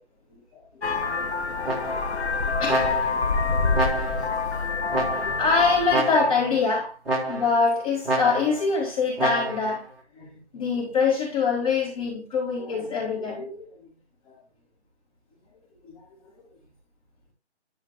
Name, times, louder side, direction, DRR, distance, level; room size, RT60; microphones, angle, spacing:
voice 1, 0.3-0.6 1.0-1.1 2.6-3.0 3.5-4.1 4.6-4.7 5.1-7.0 7.2-9.9 10.2-13.9 14.3-14.4 15.8-16.0, left 4 dB, 30° left, 3.7 m, -25 dB
Vehicle horn car horn honking, 0.8-6.0, left 4 dB, 75° left, 1.3 m, -26 dB
sound 1, 1.6-2.2 2.7-3.3 3.7-4.4 4.9-5.5 5.9-6.5 7.1-7.7 8.1-8.7 9.2-9.8, right 2 dB, 5° right, 1.2 m, -28 dB
13.0 x 5.0 x 2.8 m
hypercardioid pair, 165°, 33 cm